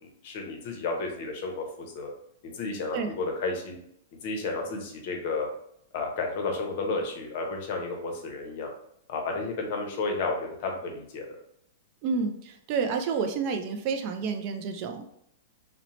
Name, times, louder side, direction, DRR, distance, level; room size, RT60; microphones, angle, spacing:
voice 1, 0.0-2.1 2.4-3.8 4.2-5.5 5.9-8.7 9.1-11.3, left 3 dB, 50° left, 2 dB, 0.6 m, -32 dB
voice 2, 12.0-15.1, right 5 dB, 40° right, 6 dB, 0.3 m, -29 dB
2.7 x 2.0 x 2.9 m, 0.72 s
hypercardioid pair, 145°, 0 cm